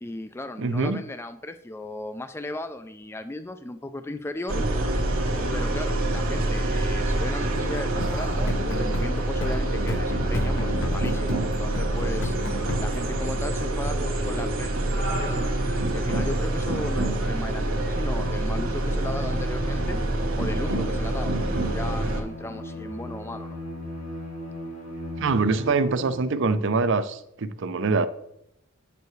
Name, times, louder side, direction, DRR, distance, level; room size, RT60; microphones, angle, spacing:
voice 1, 0.0-4.6 5.5-12.4 12.8-14.8 15.0-20.0 20.4-23.6, left 1 dB, 10° left, 9 dB, 0.3 m, -36 dB
voice 2, 0.6-1.0 25.2-28.1, right 4 dB, 60° right, 12 dB, 0.6 m, -24 dB
sound 1, 4.5-22.2, right 1 dB, 85° right, 1.7 m, -26 dB
sound 2, 7.5-13.1, left 2 dB, 60° left, 0.7 m, -34 dB
Bowed string instrument, 17.9-26.5, equal, 85° left, 2.2 m, -37 dB
9.3 x 6.9 x 3.2 m, 0.77 s
head